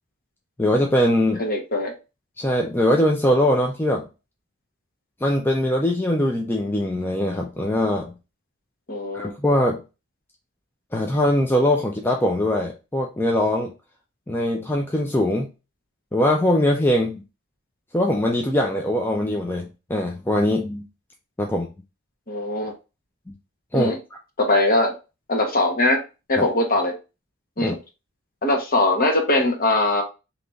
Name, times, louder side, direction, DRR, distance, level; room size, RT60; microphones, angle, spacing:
voice 1, 0.6-1.4 2.4-4.1 5.2-8.1 9.1-9.8 10.9-13.7 14.3-15.5 16.1-17.2 17.9-20.8 21.4-21.7 23.3-23.4 23.7-23.9 26.4-26.5 27.6-27.8, left 1 dB, 10° left, 0 dB, 0.5 m, -21 dB
voice 2, 1.4-1.9 8.9-9.3 22.3-22.7 23.7-24.0 24.4-24.9 25.3-26.0 26.3-26.9 27.6-27.8 28.4-30.0, left 2 dB, 40° left, 2 dB, 1.1 m, -21 dB
3.5 x 2.9 x 3.9 m, 0.29 s
head